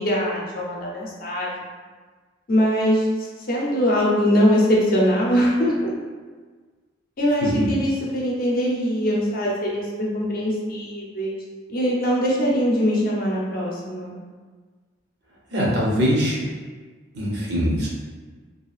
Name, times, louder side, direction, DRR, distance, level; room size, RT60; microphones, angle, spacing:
voice 1, 0.0-1.5 2.5-3.1 3.5-5.9 7.2-11.4 11.7-14.1, equal, 50° left, -4 dB, 0.6 m, -22 dB
voice 2, 15.5-16.4 17.1-17.9, equal, 60° right, -4 dB, 0.6 m, -22 dB
2.7 x 2.5 x 2.3 m, 1.4 s
head